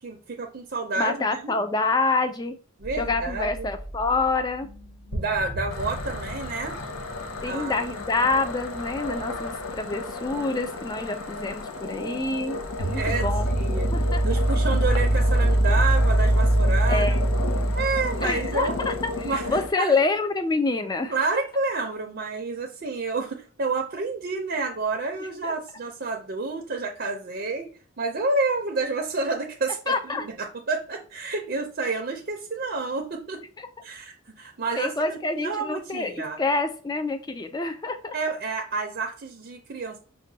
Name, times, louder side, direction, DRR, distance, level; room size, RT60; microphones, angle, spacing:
voice 1, 0.0-1.6 2.8-3.7 5.1-6.8 7.4-7.9 12.9-13.3 13.6-13.9 14.2-17.1 17.4-17.5 17.7-18.8 19.2-19.5 19.8-19.9 21.1-27.7 28.0-33.4 33.8-36.4 38.1-40.0, right 3 dB, 50° right, 2 dB, 0.5 m, -29 dB
voice 2, 1.0-2.5 3.0-4.7 7.4-13.5 13.9-14.2 16.9-17.8 18.2-21.2 25.4-25.5 29.9-30.3 33.6-33.7 34.8-38.2, left 3 dB, 20° left, 7 dB, 0.3 m, -27 dB
sound 1, 2.8-4.3 4.6-4.7 5.1-9.5 12.6-19.7, right 1 dB, 60° left, 1.0 m, -25 dB
sound 2, 5.7-19.7, left 2 dB, 80° left, 0.6 m, -34 dB
6.1 x 2.2 x 2.7 m, 0.40 s
head